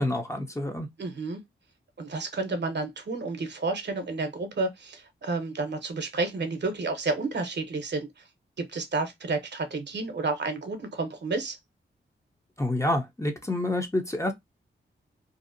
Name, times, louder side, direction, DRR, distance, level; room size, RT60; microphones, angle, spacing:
voice 1, 0.0-0.9 12.6-14.3, left 1 dB, 15° left, 0.6 m, -28 dB
voice 2, 1.0-1.4 2.0-8.2 8.6-11.6, right 3 dB, 55° right, 0.8 m, -31 dB
2.6 x 2.0 x 2.5 m
cardioid pair, 60°, 21 cm